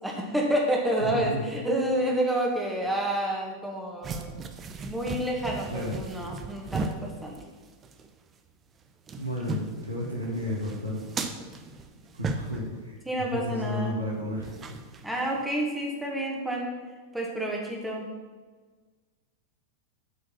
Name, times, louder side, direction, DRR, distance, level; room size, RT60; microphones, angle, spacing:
voice 1, 0.0-4.3 4.8-7.4 13.1-14.0 15.0-16.7 17.1-18.1, right 1 dB, 5° right, -1 dB, 1.8 m, -29 dB
voice 2, 1.1-1.5 5.7-6.0 9.2-11.0 12.1-14.5, left 1 dB, 80° right, -2 dB, 1.8 m, -32 dB
sound 1, 4.0-8.1 8.3-8.4 8.8-12.8 14.4-15.4, right 4 dB, 25° right, 0.7 m, -37 dB
9.1 x 5.0 x 5.6 m, 1.4 s
figure-of-eight pair, 90°, 0 cm